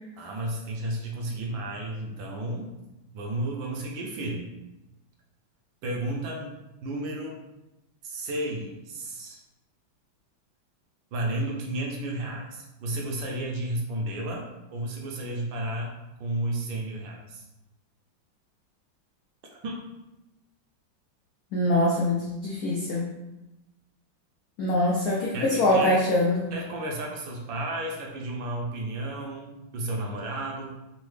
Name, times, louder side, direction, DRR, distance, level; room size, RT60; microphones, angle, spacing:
voice 1, 0.2-2.7 3.1-4.5 5.8-6.5 6.8-7.4 8.0-9.4 11.1-15.9 16.2-17.5 19.6-19.9 25.3-26.0 26.5-30.7, right 1 dB, 75° right, -1 dB, 1.3 m, -32 dB
voice 2, 21.5-23.1 24.6-26.5, left 1 dB, 85° left, -4 dB, 0.8 m, -24 dB
3.7 x 2.1 x 3.1 m, 0.98 s
omnidirectional pair, 2.2 m